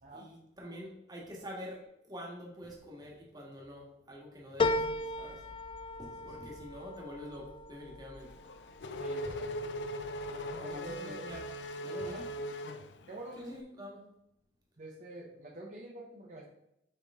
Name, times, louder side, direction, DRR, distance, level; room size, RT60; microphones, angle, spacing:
voice 1, 0.1-4.9 5.2-5.4 6.0-8.4 9.2-9.3 10.3-11.4 11.8-12.3 13.4-14.1, equal, 25° right, -2 dB, 1.7 m, -46 dB
sound 1, 4.6-9.4 9.8-10.5 10.9-11.0, left 2 dB, 30° left, 0.3 m, -36 dB
voice 2, 6.2-6.6 9.0-10.0 10.5-11.3 12.0-12.3 13.1-13.6 14.8-16.5, right 2 dB, 45° right, -2 dB, 0.8 m, -47 dB
Race car auto racing / Accelerating revving vroom, 8.2-13.5, equal, 85° left, 0.5 m, -39 dB
6.6 x 5.0 x 3.6 m, 0.82 s
head